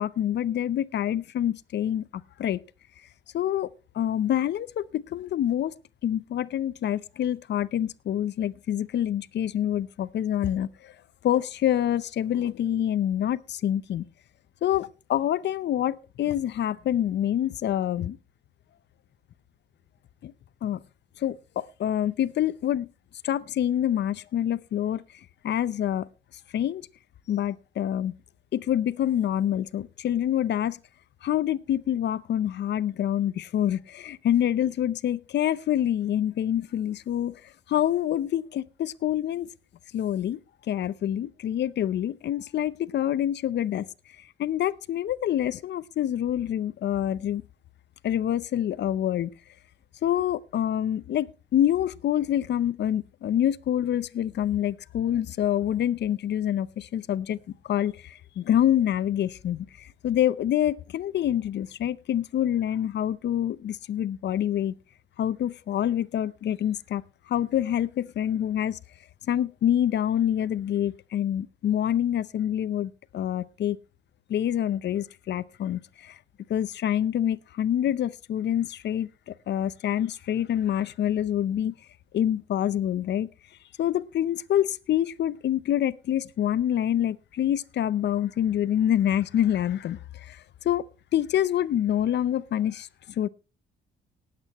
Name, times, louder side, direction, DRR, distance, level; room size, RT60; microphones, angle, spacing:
voice 1, 0.0-2.6 3.3-3.7 3.9-5.7 6.0-10.9 11.2-14.1 14.6-18.2 20.2-20.3 20.6-20.8 21.2-22.9 23.2-25.0 25.4-26.1 26.5-26.9 27.3-28.1 28.5-30.8 31.2-37.3 37.7-39.5 39.9-40.4 40.7-43.9 44.4-47.4 48.0-49.3 50.0-57.4 57.6-64.7 65.2-67.0 67.3-68.8 69.3-73.8 74.3-76.2 76.5-81.7 82.1-83.3 83.8-90.8 91.1-93.3, left 11 dB, 60° left, 0.7 m, -26 dB
19.0 x 8.7 x 3.0 m
cardioid pair, 90°, 20 cm